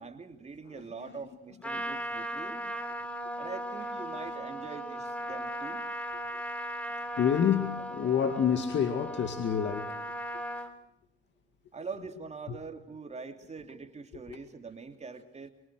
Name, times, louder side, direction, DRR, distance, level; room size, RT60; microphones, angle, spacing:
voice 1, 0.0-2.6 3.4-5.8 11.7-15.5, right 4 dB, 35° right, 3.1 m, -43 dB
voice 2, 0.7-1.1 1.9-2.0 2.6-2.8 7.2-10.6 12.5-12.6 14.3-14.4, left 8 dB, 65° left, 2.2 m, -29 dB
Trumpet, 1.6-10.7, equal, 5° left, 3.9 m, -37 dB
28.5 x 24.0 x 6.3 m
cardioid pair, 90°, 20 cm